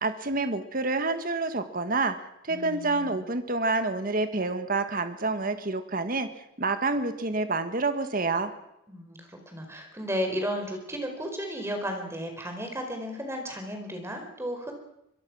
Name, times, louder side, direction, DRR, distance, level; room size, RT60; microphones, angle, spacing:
voice 1, 0.0-2.2 2.4-6.3 6.6-8.5, right 3 dB, 45° right, 9 dB, 1.6 m, -28 dB
voice 2, 2.5-3.2 8.9-14.7, equal, 15° right, 4 dB, 4.8 m, -34 dB
24.5 x 22.0 x 6.3 m, 0.84 s
head